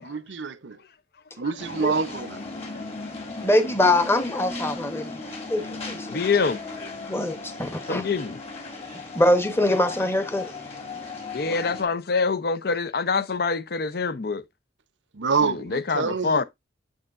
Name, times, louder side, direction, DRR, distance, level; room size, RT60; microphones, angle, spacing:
voice 1, 0.0-0.8 1.4-2.4 15.1-16.4, right 5 dB, 80° right, 0.7 m, -27 dB
sound 1, 1.6-11.8, left 3 dB, 35° left, 2.1 m, -36 dB
voice 2, 3.4-5.1 5.5-6.2 7.1-8.1 9.1-10.5, left 1 dB, 15° left, 1.0 m, -23 dB
voice 3, 6.1-6.6 7.9-8.4 11.3-14.4 15.4-16.4, left 4 dB, 55° left, 0.6 m, -25 dB
7.4 x 6.4 x 2.5 m
head